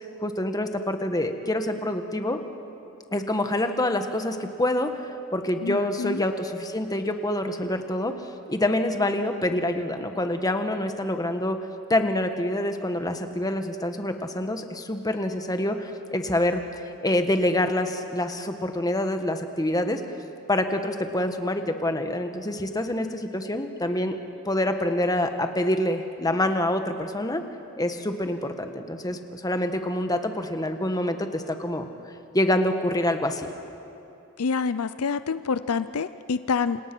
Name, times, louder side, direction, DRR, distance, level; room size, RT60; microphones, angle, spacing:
voice 1, 0.2-2.4 3.1-8.2 8.5-11.6 11.9-20.0 20.5-24.1 24.4-27.4 27.8-31.9 32.3-33.5, left 1 dB, 15° left, 6 dB, 1.4 m, -26 dB
voice 2, 5.6-6.2 34.4-36.8, left 5 dB, 70° left, 13 dB, 0.6 m, -27 dB
28.5 x 27.0 x 6.2 m, 2.7 s
head